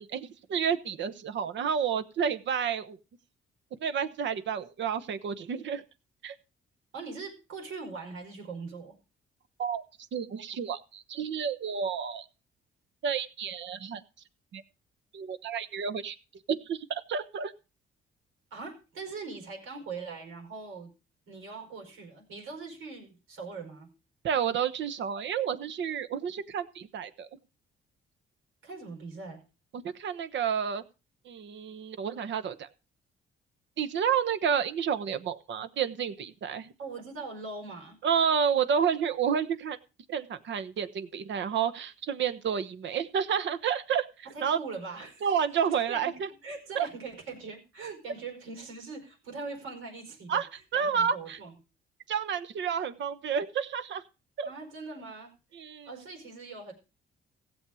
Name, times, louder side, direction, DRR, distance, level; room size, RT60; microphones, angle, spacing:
voice 1, 0.0-3.0 3.8-5.8 6.2-6.3 9.6-9.8 10.1-12.2 13.0-14.0 14.5-14.6 15.1-16.2 16.5-17.5 24.2-27.3 29.7-30.8 31.2-32.7 33.8-36.7 38.0-39.8 40.1-44.6 45.2-46.3 46.7-46.9 50.3-50.5 50.7-51.4 52.1-54.0 54.4-54.5 55.5-55.9, right 7 dB, 65° right, 12 dB, 1.1 m, -30 dB
voice 2, 6.9-9.0 18.5-20.9 21.3-23.9 28.6-29.4 36.8-38.0 44.2-45.3 45.9-46.1 46.4-50.4 50.7-51.5 54.4-55.3 55.8-56.7, right 4 dB, 90° right, 3 dB, 4.8 m, -41 dB
16.0 x 7.3 x 4.9 m, 0.31 s
cardioid pair, 90°, 20 cm